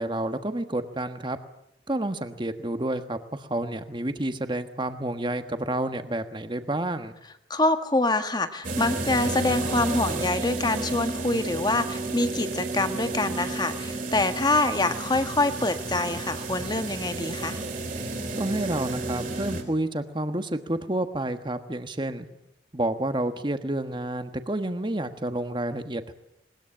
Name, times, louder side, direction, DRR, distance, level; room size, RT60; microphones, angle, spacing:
voice 1, 0.0-1.4 1.9-7.1 18.4-22.3 22.7-26.1, right 1 dB, 25° right, 9 dB, 1.3 m, -29 dB
voice 2, 7.5-17.6, left 2 dB, 20° left, 9 dB, 1.4 m, -25 dB
sound 1, 8.6-19.6, right 2 dB, 45° right, 3.7 m, -32 dB
20.5 x 20.0 x 8.9 m, 0.80 s
head